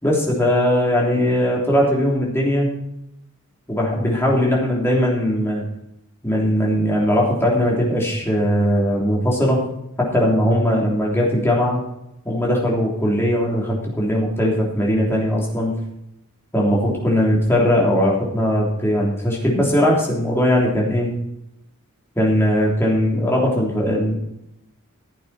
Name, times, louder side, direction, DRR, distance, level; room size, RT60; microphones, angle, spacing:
voice 1, 0.0-2.7 3.7-5.6 6.2-9.6 10.0-11.8 12.2-15.7 16.5-21.1 22.1-24.2, equal, 10° left, -3 dB, 3.2 m, -19 dB
15.0 x 8.5 x 4.3 m, 0.83 s
head